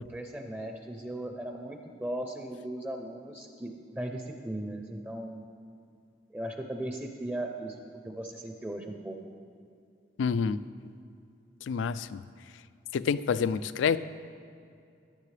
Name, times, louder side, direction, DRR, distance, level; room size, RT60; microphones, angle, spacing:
voice 1, 0.0-5.4 6.3-7.8 8.0-9.2, right 1 dB, 10° right, 3 dB, 0.5 m, -37 dB
voice 2, 10.2-10.6 11.7-12.2 12.9-14.0, left 6 dB, 85° left, 15 dB, 0.3 m, -27 dB
13.5 x 10.5 x 3.3 m, 2.5 s
head